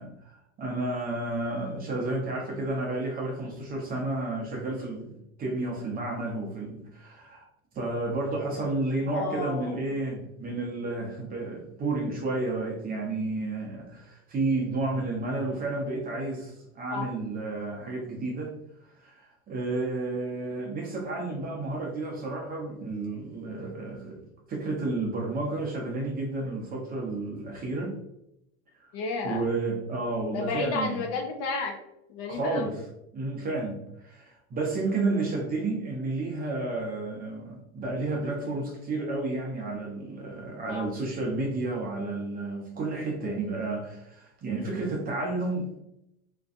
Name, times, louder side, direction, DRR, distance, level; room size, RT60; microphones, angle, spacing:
voice 1, 0.0-7.4 7.7-18.5 19.0-24.2 24.5-28.0 28.8-28.9 29.2-31.0 32.3-32.8 33.1-45.8, right 2 dB, 25° right, -1 dB, 0.6 m, -31 dB
voice 2, 9.1-9.8 16.9-17.1 28.9-29.4 30.3-31.7 32.1-32.7 40.7-40.8, left 4 dB, 45° left, 2 dB, 0.5 m, -32 dB
2.5 x 2.2 x 2.5 m, 0.84 s
supercardioid pair, 120°, 35 cm